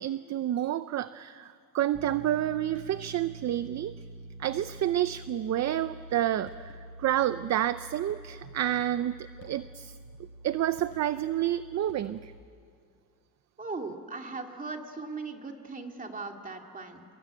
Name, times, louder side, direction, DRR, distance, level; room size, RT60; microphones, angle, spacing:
voice 1, 0.0-3.9 4.4-10.0 10.4-12.3, right 12 dB, 50° right, 13 dB, 0.6 m, -29 dB
sound 1, 1.9-12.4, right 2 dB, 90° right, 3.9 m, -47 dB
sound 2, 2.7-3.2 4.6-5.1 6.1-6.2 6.5-7.1 8.1-8.5 9.4-9.9 10.8-11.4 11.9-12.6, left 4 dB, 40° left, 6.4 m, -59 dB
voice 2, 13.6-17.0, right 3 dB, 25° right, 3 dB, 2.4 m, -38 dB
28.0 x 22.5 x 9.0 m, 2.3 s
cardioid pair, 145°, 35 cm